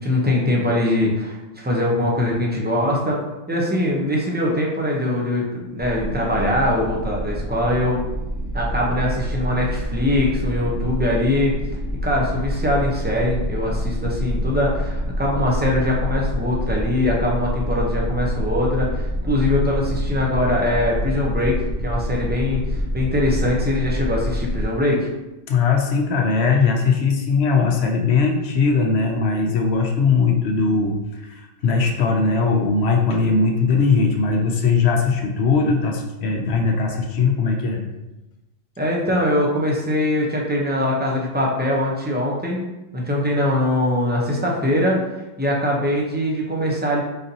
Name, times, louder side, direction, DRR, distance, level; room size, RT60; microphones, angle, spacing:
voice 1, 0.0-3.2 3.5-8.0 8.5-11.5 12.0-21.6 21.8-25.1 38.8-42.6 42.9-45.0 45.4-47.0, left 1 dB, 10° right, -3 dB, 0.5 m, -22 dB
sound 1, 5.8-24.7, equal, 85° right, 1.2 m, -26 dB
voice 2, 25.5-37.8, left 4 dB, 65° left, 2 dB, 0.8 m, -19 dB
4.1 x 4.0 x 2.7 m, 1.0 s
omnidirectional pair, 1.3 m